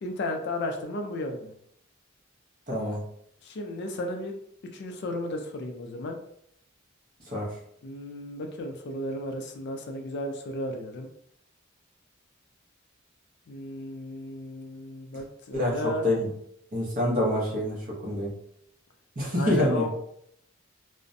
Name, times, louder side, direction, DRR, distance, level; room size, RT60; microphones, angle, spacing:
voice 1, 0.0-1.5 3.4-4.3 4.7-6.2 7.8-11.1 13.5-16.0 19.3-19.9, left 1 dB, 55° left, 4 dB, 0.4 m, -34 dB
voice 2, 2.7-3.0 7.3-7.5 15.5-16.3 16.7-18.3 19.2-19.9, left 1 dB, 40° right, -3 dB, 0.8 m, -26 dB
2.4 x 2.1 x 2.5 m, 0.70 s
head